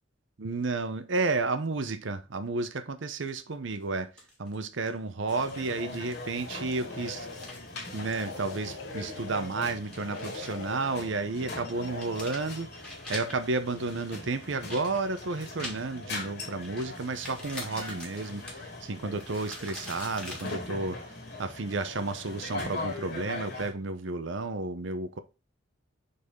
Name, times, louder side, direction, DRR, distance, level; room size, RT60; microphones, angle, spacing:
voice 1, 0.4-4.1 4.4-7.3 7.9-21.0 21.4-25.2, right 3 dB, 65° right, 0.7 m, -32 dB
sound 1, 3.1-3.7 4.2-4.6 4.8-5.0 5.4-6.2 6.6-8.6 9.1-9.2 9.7-10.7 11.0-11.1 11.6-13.5 14.1-16.2 16.6-20.5, left 1 dB, 5° left, 2.0 m, -45 dB
sound 2, 5.3-23.7, left 2 dB, 55° left, 2.5 m, -41 dB
sound 3, 6.1-7.6 8.0-9.4 10.0-11.1 11.7-12.2, left 4 dB, 75° left, 0.9 m, -43 dB
6.6 x 4.1 x 3.6 m
head